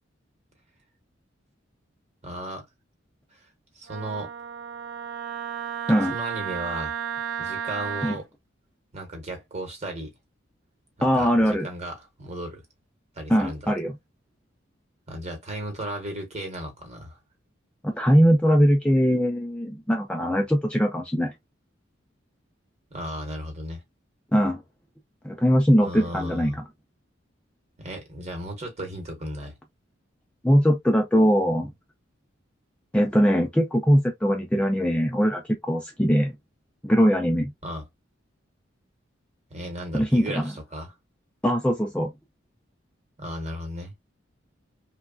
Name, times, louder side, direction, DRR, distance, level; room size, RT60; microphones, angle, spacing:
voice 1, 2.2-2.7 3.7-4.3 6.1-6.9 7.4-8.2 8.9-10.1 11.0-12.6 13.2-13.7 15.1-17.2 22.9-23.8 25.8-26.6 27.8-29.5 37.6-37.9 39.5-40.9 43.2-43.9, right 1 dB, 35° right, 1.0 m, -35 dB
Wind instrument woodwind instrument, 3.9-8.2, right 8 dB, 80° right, 0.6 m, -33 dB
voice 2, 11.0-11.7 13.3-13.9 17.8-21.3 24.3-24.6 25.2-26.6 30.4-31.7 32.9-36.4 36.8-37.5 39.9-40.5 41.4-42.1, equal, 5° left, 0.3 m, -21 dB
3.1 x 2.2 x 2.2 m
head